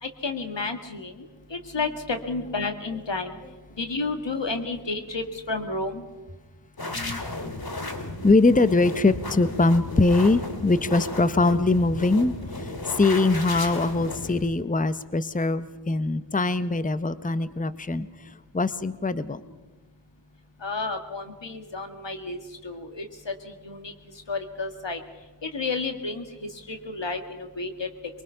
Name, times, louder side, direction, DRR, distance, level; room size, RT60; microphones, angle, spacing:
voice 1, 0.0-3.4 3.8-6.1 20.6-23.3 23.6-23.9 24.3-25.0 25.4-26.3 26.7-27.9, left 3 dB, 90° left, 5 dB, 1.8 m, -31 dB
sound 1, 6.8-14.5, left 2 dB, 60° left, 2.4 m, -34 dB
voice 2, 6.9-7.5 8.2-19.4, left 3 dB, 20° left, 13 dB, 0.7 m, -23 dB
23.5 x 23.0 x 5.7 m, 1.2 s
wide cardioid pair, 50°, 42 cm